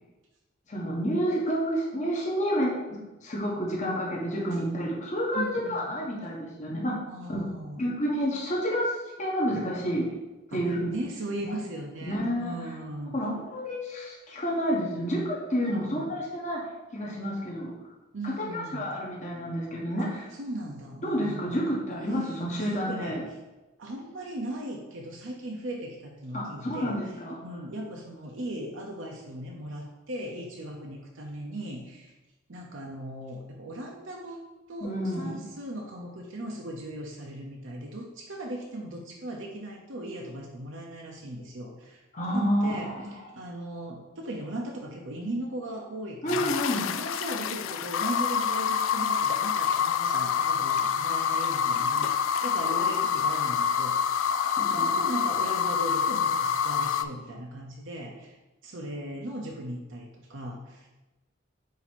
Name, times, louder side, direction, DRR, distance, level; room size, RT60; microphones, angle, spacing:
voice 1, 0.7-6.9 7.3-7.4 7.8-10.0 10.5-10.9 12.1-12.5 13.1-16.6 16.9-17.7 18.2-20.2 21.0-23.2 26.3-27.3 34.8-35.4 42.1-43.1 46.2-46.9 52.6-52.8 54.3-55.0, equal, 35° left, -3 dB, 1.2 m, -29 dB
voice 2, 5.3-5.9 7.1-7.8 10.5-13.1 15.6-16.1 18.1-18.9 20.0-20.1 20.4-21.7 22.6-23.4 23.8-27.0 27.4-32.1 32.5-34.4 34.7-42.0 42.3-42.9 43.4-46.6 47.0-58.4 58.6-60.9, right 1 dB, 70° right, -1 dB, 0.8 m, -38 dB
sound 1, 46.3-57.0, left 7 dB, 70° left, 0.3 m, -27 dB
8.1 x 2.8 x 4.5 m, 1.1 s
head